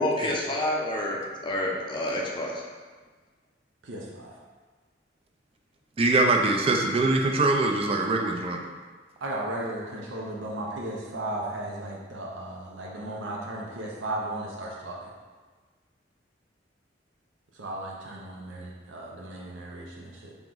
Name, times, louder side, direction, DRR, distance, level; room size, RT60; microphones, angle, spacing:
voice 1, 0.0-2.6, left 1 dB, 25° left, -1 dB, 0.5 m, -28 dB
voice 2, 3.8-4.3 9.2-15.1 17.5-20.3, right 1 dB, 90° right, -3 dB, 0.7 m, -35 dB
voice 3, 6.0-8.6, right 2 dB, 30° right, 2 dB, 0.3 m, -23 dB
3.5 x 3.0 x 3.8 m, 1.4 s
head